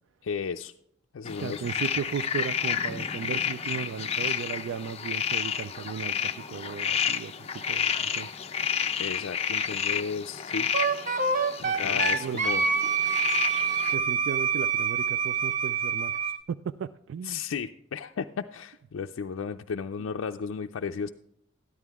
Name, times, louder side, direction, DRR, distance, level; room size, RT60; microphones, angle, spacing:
voice 1, 0.2-0.7 1.1-1.6 9.0-10.7 11.7-12.7 17.2-21.1, left 6 dB, 90° left, 4 dB, 0.4 m, -34 dB
sound 1, 1.3-13.9, left 7 dB, 30° left, 0.6 m, -30 dB
voice 2, 1.4-8.4 11.6-12.4 13.9-17.4, right 7 dB, 70° right, 14 dB, 0.3 m, -36 dB
Wind instrument woodwind instrument, 10.7-16.4, right 6 dB, 40° right, 0.6 m, -26 dB
13.0 x 11.0 x 3.5 m, 0.73 s
head